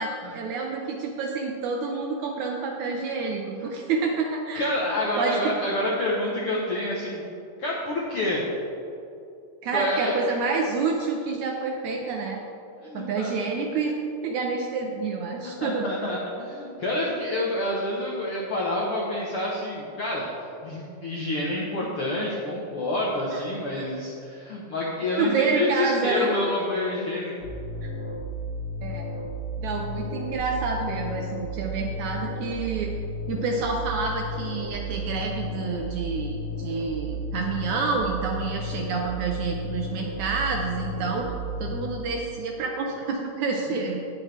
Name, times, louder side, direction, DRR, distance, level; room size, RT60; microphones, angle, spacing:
voice 1, 0.0-4.7 5.2-5.4 9.6-12.4 12.9-14.0 14.2-15.9 23.3-23.4 23.7-23.9 25.2-26.3 27.8-27.9 28.8-29.1 29.6-32.9 33.3-41.3 41.6-44.0, right 4 dB, 75° right, 1 dB, 1.8 m, -28 dB
voice 2, 4.5-7.2 7.6-8.5 9.7-10.3 12.8-13.3 15.6-20.3 20.6-27.3, left 1 dB, 70° left, -4 dB, 1.3 m, -28 dB
sound 1, 27.4-41.8, equal, 35° left, 2.8 m, -33 dB
18.0 x 6.5 x 3.3 m, 2.7 s
omnidirectional pair, 4.0 m